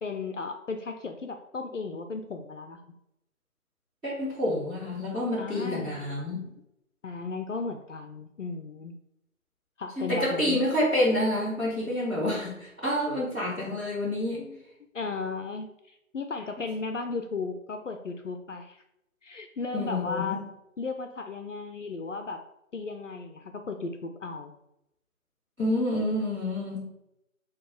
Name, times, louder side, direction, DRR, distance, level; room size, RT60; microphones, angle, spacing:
voice 1, 0.0-2.8 5.4-6.0 7.0-9.0 9.8-10.6 14.4-14.6 14.9-18.8 19.2-20.4 20.8-22.4 22.7-24.5, left 4 dB, 60° left, 6 dB, 0.5 m, -35 dB
voice 2, 4.0-6.4 10.0-14.5 19.7-20.3 25.6-26.9, left 1 dB, 5° right, -16 dB, 1.1 m, -28 dB
4.6 x 2.3 x 3.7 m, 0.86 s
figure-of-eight pair, 160°, 42 cm